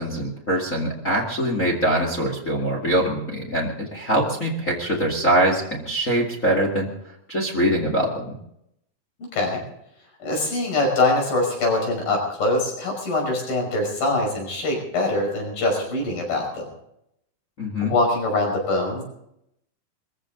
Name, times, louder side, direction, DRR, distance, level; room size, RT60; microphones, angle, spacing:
voice 1, 0.0-6.9 7.3-8.4 17.6-17.9, right 1 dB, 25° left, -1 dB, 1.9 m, -23 dB
voice 2, 10.2-16.7 17.8-19.0, left 2 dB, 65° left, 1 dB, 7.3 m, -23 dB
23.5 x 15.0 x 3.9 m, 0.77 s
omnidirectional pair, 4.5 m